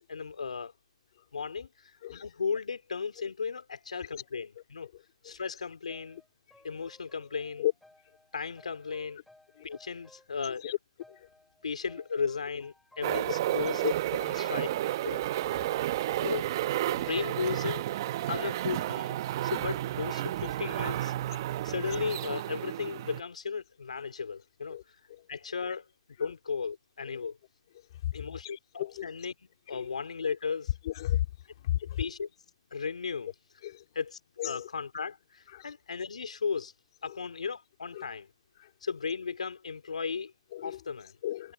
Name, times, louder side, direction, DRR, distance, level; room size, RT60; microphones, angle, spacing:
voice 1, 0.1-0.7 1.3-4.9 5.2-6.2 6.6-7.7 8.3-9.2 9.6-10.8 11.6-13.8 14.2-14.7 16.2-16.5 16.9-17.8 18.3-19.2 19.4-21.1 21.6-24.8 25.3-25.9 26.2-27.4 28.1-29.3 29.7-30.7 32.0-32.3 32.7-33.3 33.9-36.7 37.0-38.3 38.8-40.3 40.6-41.1, left 5 dB, 75° left, 2.8 m, -35 dB
sound 1, 5.9-10.7 11.0-13.7 14.1-16.6 17.0-17.6 17.9-19.6, left 2 dB, ahead, 7.6 m, -61 dB
sound 2, 13.0-23.2, right 14 dB, 35° right, 0.8 m, -32 dB
voice 2, 28.4-29.1 29.7-29.9 30.9-31.3 31.6-32.0 33.6-33.8 34.4-34.7 35.5-35.7 37.1-37.2 38.0-38.1 40.5-40.8 41.2-41.5, left 13 dB, 40° left, 2.4 m, -33 dB
hypercardioid pair, 155°, 4 cm